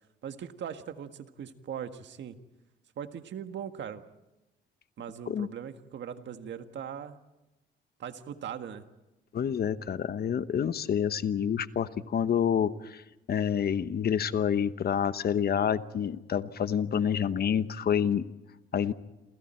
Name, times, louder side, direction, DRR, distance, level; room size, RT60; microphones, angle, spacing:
voice 1, 0.2-2.4 3.0-4.0 5.0-7.2 8.0-8.8, right 8 dB, 65° right, 8 dB, 1.7 m, -40 dB
voice 2, 9.3-18.2 18.7-18.9, left 8 dB, 50° left, 13 dB, 1.1 m, -28 dB
28.0 x 27.5 x 4.5 m, 1.0 s
cardioid pair, 90°, 20 cm